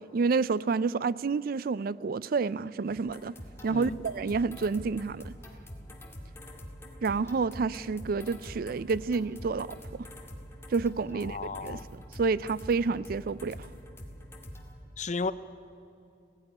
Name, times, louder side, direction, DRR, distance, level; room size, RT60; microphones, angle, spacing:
voice 1, 0.0-3.3 3.6-5.3 7.0-10.1 10.7-13.7, right 4 dB, 55° right, 0.4 m, -29 dB
sound 1, 3.1-14.7, equal, 15° left, 2.1 m, -45 dB
voice 2, 11.1-11.9 15.0-15.3, left 4 dB, 45° left, 0.7 m, -34 dB
17.0 x 16.0 x 9.8 m
head